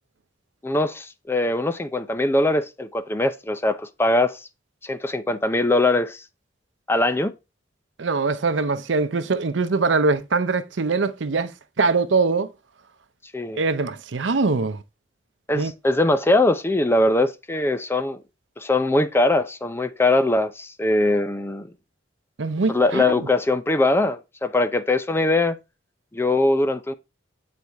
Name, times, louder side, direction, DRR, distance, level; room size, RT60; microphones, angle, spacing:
voice 1, 0.6-4.4 4.8-6.2 6.9-7.3 13.3-13.6 15.5-18.2 18.6-21.7 22.7-25.6 26.1-26.9, left 2 dB, 15° left, 0.5 m, -21 dB
voice 2, 8.0-12.5 13.5-14.8 15.5-15.7 22.4-23.0, right 4 dB, 85° right, 0.6 m, -22 dB
8.0 x 4.2 x 3.4 m
head